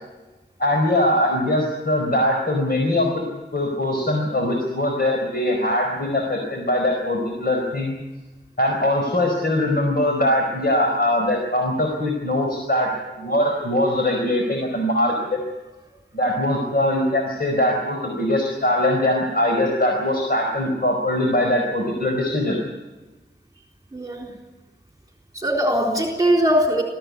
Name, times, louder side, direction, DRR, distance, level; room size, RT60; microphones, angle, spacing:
voice 1, 0.6-3.1 3.5-8.0 8.6-12.9 13.2-15.4 16.1-22.6, left 1 dB, 60° left, 1 dB, 4.7 m, -21 dB
voice 2, 23.9-24.3 25.3-26.8, equal, 20° right, 0 dB, 3.8 m, -20 dB
22.0 x 15.5 x 9.6 m, 1.1 s
wide cardioid pair, 60°, 18 cm